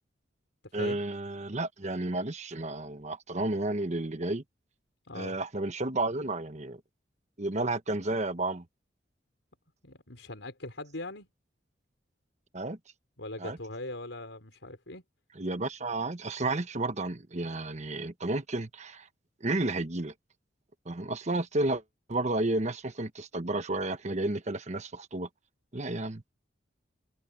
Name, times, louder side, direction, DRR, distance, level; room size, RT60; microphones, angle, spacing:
voice 1, 0.7-4.4 5.1-6.8 7.4-8.6 12.5-12.8 13.4-13.6 15.3-19.1 19.4-20.1 20.9-21.8 22.1-25.3 25.7-26.2, right 2 dB, 40° right, 1.2 m, -32 dB
voice 2, 9.8-11.3 13.2-15.0, left 2 dB, 90° left, 5.3 m, -40 dB
head